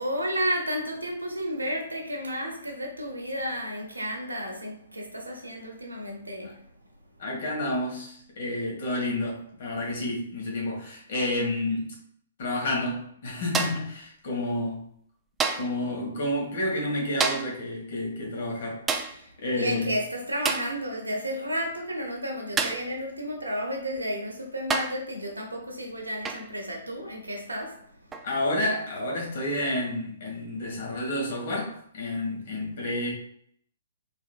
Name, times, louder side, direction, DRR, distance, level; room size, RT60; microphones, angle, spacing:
voice 1, 0.0-6.7 19.5-27.9, equal, 80° right, 0 dB, 1.0 m, -32 dB
voice 2, 7.2-11.9 12.4-14.8 15.5-19.9 28.2-33.1, left 1 dB, 50° left, -2 dB, 1.5 m, -30 dB
sound 1, 13.5-13.9 15.4-15.8 17.2-17.6 18.9-19.2 20.4-20.8 22.6-22.9 24.0-24.1 24.7-25.1 26.2-26.5 28.1-28.3, right 5 dB, 15° right, 0.3 m, -29 dB
3.6 x 3.5 x 2.4 m, 0.64 s
figure-of-eight pair, 120°, 0 cm